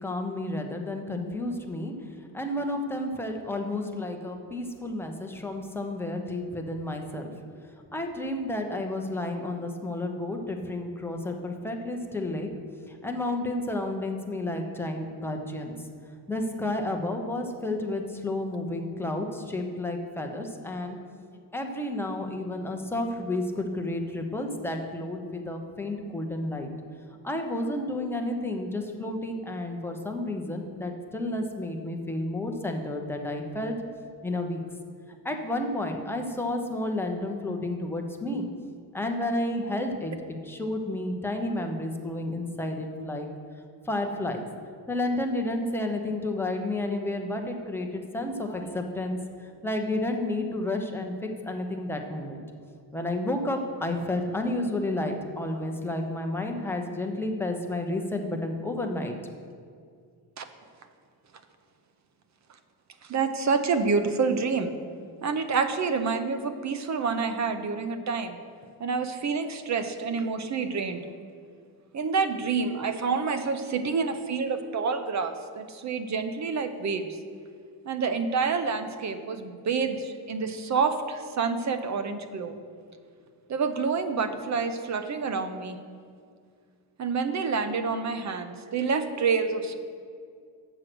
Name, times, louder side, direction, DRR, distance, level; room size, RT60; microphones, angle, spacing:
voice 1, 0.0-1.9 2.3-7.3 7.6-12.5 12.9-15.8 16.3-21.0 21.5-26.7 27.2-33.7 34.2-34.6 35.2-38.5 38.9-40.1 40.5-43.3 43.9-44.4 44.9-52.4 52.9-59.2, left 1 dB, 5° left, 3 dB, 0.8 m, -31 dB
voice 2, 63.0-64.7 65.2-68.4 68.8-71.0 71.9-77.2 77.9-82.6 83.5-85.8 87.0-89.8, right 5 dB, 40° right, 9 dB, 0.7 m, -28 dB
7.9 x 6.4 x 6.1 m, 2.2 s
cardioid pair, 140°, 44 cm